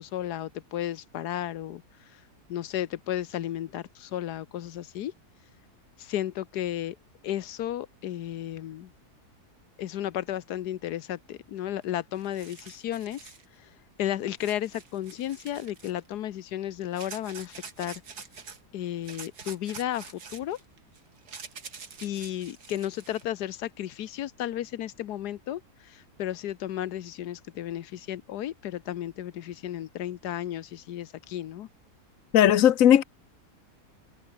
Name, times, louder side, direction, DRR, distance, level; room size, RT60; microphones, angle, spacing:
voice 1, 0.0-1.8 2.5-5.1 6.0-7.0 7.2-8.9 9.8-13.3 14.0-18.0 18.7-20.6 22.0-31.7, left 12 dB, 90° left, 1.4 m, -33 dB
sound 1, 11.8-11.9 12.1-13.4 14.4-16.1 16.9-18.6 19.0-23.2, right 5 dB, 80° right, 2.9 m, -46 dB
voice 2, 32.3-33.0, left 10 dB, 60° left, 1.3 m, -17 dB
omnidirectional pair, 1.7 m